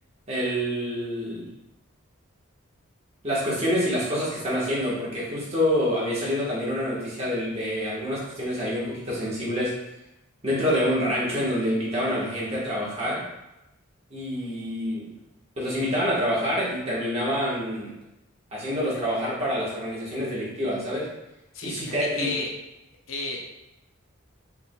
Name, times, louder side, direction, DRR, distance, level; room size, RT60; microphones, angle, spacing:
voice 1, 0.3-1.5 3.2-9.7 10.4-13.2 14.1-15.1 15.6-17.9 18.5-21.1 21.6-22.3, equal, 30° right, -7 dB, 1.2 m, -27 dB
voice 2, 21.5-22.5 23.1-23.4, left 3 dB, 65° left, 1 dB, 0.7 m, -32 dB
4.6 x 3.5 x 2.2 m, 0.92 s
head